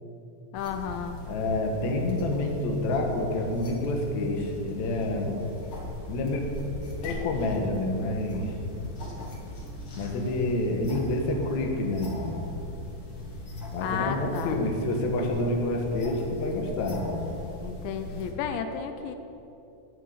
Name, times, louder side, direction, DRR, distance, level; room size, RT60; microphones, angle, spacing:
voice 1, 0.5-1.2 13.8-14.6 17.6-19.2, left 7 dB, 80° left, 6 dB, 3.0 m, -33 dB
sound 1, 0.5-18.3, left 1 dB, 40° left, 2.2 m, -38 dB
voice 2, 1.3-5.4 6.1-6.4 7.0-8.5 9.9-12.1 13.7-17.0, left 2 dB, 55° left, 1 dB, 2.1 m, -28 dB
16.5 x 5.7 x 9.9 m, 2.8 s
omnidirectional pair, 5.2 m